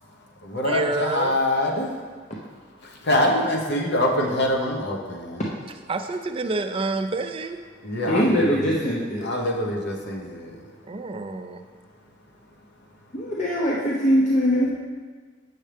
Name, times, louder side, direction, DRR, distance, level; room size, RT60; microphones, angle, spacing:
voice 1, 0.1-2.0 2.8-5.4 7.8-8.8 9.2-10.7, left 1 dB, 65° left, 0 dB, 1.0 m, -25 dB
voice 2, 0.6-1.4 5.9-7.6 10.8-11.6, right 3 dB, 30° right, 7 dB, 0.4 m, -28 dB
voice 3, 8.1-9.3 13.1-14.7, equal, 40° left, -5 dB, 0.8 m, -22 dB
7.6 x 6.3 x 3.4 m, 1.5 s
head